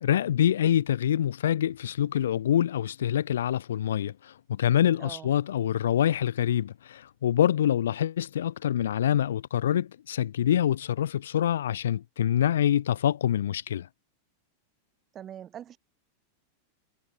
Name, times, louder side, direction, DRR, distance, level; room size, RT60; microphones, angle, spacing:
voice 1, 0.0-13.9, left 10 dB, 60° left, 0.4 m, -25 dB
voice 2, 5.0-5.3 15.1-15.8, right 10 dB, 25° right, 0.5 m, -42 dB
figure-of-eight pair, 90°, 0 cm